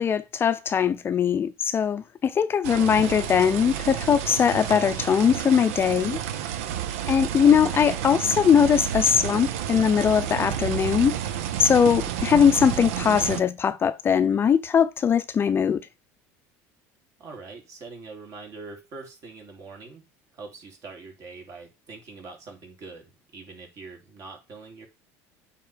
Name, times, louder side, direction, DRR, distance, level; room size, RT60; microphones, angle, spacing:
voice 1, 0.0-6.2 7.1-11.2 11.6-15.8, left 7 dB, 30° left, 0.5 m, -21 dB
sound 1, 2.6-13.4, right 10 dB, 85° right, 0.8 m, -30 dB
voice 2, 17.2-20.0 20.3-23.0 23.3-24.9, right 4 dB, 45° right, 3.2 m, -43 dB
9.1 x 3.8 x 5.0 m
supercardioid pair, 100°, 7 cm